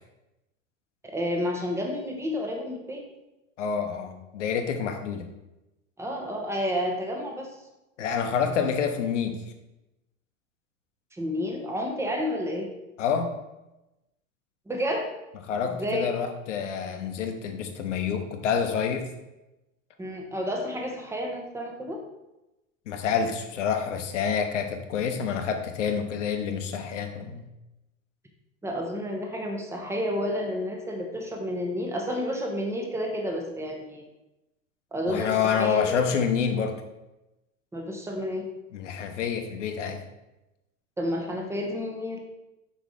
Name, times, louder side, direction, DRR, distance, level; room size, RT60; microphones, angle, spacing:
voice 1, 1.1-3.0 6.0-7.5 11.1-12.7 14.7-15.1 15.7-16.1 20.0-22.0 28.6-34.0 34.9-36.1 37.7-38.4 41.0-42.2, equal, 5° right, 1 dB, 1.0 m, -30 dB
voice 2, 3.6-5.3 8.0-9.4 13.0-13.4 15.4-19.0 22.9-27.4 35.1-36.8 38.7-40.0, left 7 dB, 60° left, 6 dB, 0.9 m, -28 dB
6.3 x 5.0 x 3.6 m, 0.97 s
figure-of-eight pair, 85°, 41 cm